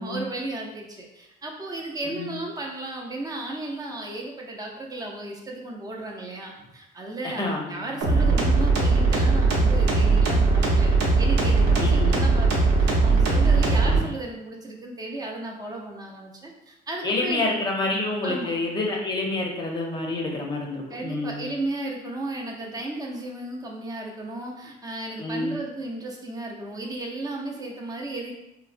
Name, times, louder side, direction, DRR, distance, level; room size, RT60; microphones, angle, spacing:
voice 1, 0.0-7.4 7.7-17.5 18.2-18.5 20.9-28.3, right 2 dB, 20° right, 0 dB, 0.5 m, -34 dB
voice 2, 7.2-8.4 11.8-12.2 13.8-14.2 17.0-21.5 25.2-25.6, left 2 dB, 25° left, 0 dB, 0.6 m, -28 dB
sound 1, 8.0-14.0, right 3 dB, 80° right, 0.8 m, -20 dB
3.5 x 2.1 x 2.5 m, 0.88 s
cardioid pair, 110°, 17 cm